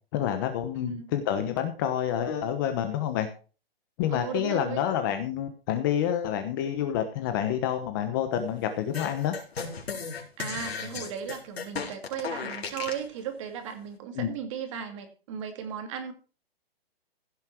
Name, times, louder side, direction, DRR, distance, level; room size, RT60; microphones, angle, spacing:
voice 1, 0.1-3.3 4.0-9.3 14.1-14.3, left 10 dB, 20° left, 8 dB, 1.0 m, -28 dB
voice 2, 4.1-4.8 10.4-16.1, right 8 dB, 30° right, 6 dB, 2.5 m, -36 dB
sound 1, 8.9-13.1, left 5 dB, 85° left, 4.3 m, -35 dB
16.0 x 7.5 x 4.6 m, 0.36 s
hypercardioid pair, 165°, 31 cm